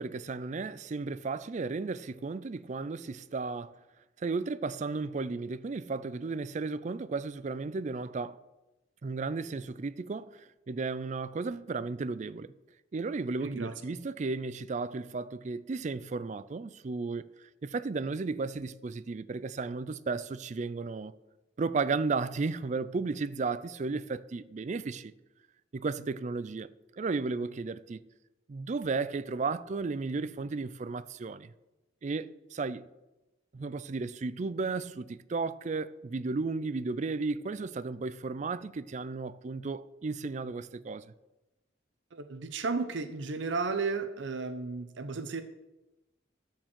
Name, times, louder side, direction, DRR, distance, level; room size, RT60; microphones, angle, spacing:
voice 1, 0.0-3.7 4.2-8.4 9.0-12.5 12.9-17.2 17.6-21.1 21.6-25.1 25.7-26.7 27.0-28.1 28.5-31.5 32.0-32.9 33.5-41.0, right 4 dB, 40° right, 0.4 m, -34 dB
voice 2, 13.4-13.7 42.1-45.4, right 4 dB, 70° right, 0.7 m, -33 dB
12.0 x 4.6 x 7.5 m
head